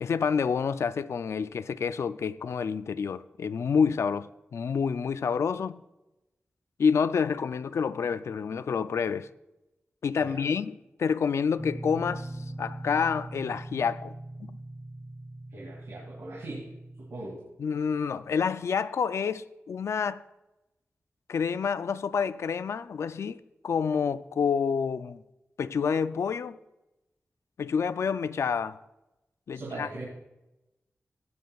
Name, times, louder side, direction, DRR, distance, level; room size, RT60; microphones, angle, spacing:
voice 1, 0.0-5.8 6.8-9.3 10.0-12.3 12.6-14.1 14.5-14.6 17.6-20.2 21.3-25.2 25.6-26.6 27.6-28.8 29.5-29.9, left 6 dB, 85° left, 0.4 m, -28 dB
sound 1, 11.6-17.2, right 1 dB, 10° right, 0.7 m, -41 dB
voice 2, 15.5-16.7 17.0-17.5 29.5-30.1, right 2 dB, 80° right, 2.5 m, -40 dB
15.0 x 9.5 x 2.4 m
wide cardioid pair, 105°, 5 cm